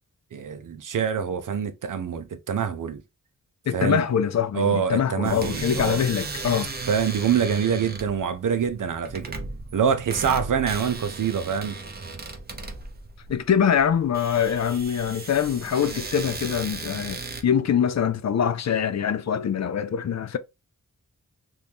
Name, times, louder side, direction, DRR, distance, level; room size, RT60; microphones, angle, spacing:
voice 1, 0.3-3.0 3.7-4.0 4.5-6.0 6.9-9.3 9.7-11.8, right 7 dB, 70° right, 0.6 m, -25 dB
voice 2, 3.7-6.7 13.3-20.4, left 8 dB, 55° left, 0.4 m, -24 dB
sound 1, 5.2-17.4, right 3 dB, 30° right, 0.6 m, -36 dB
3.0 x 2.6 x 3.4 m
wide cardioid pair, 100°, 32 cm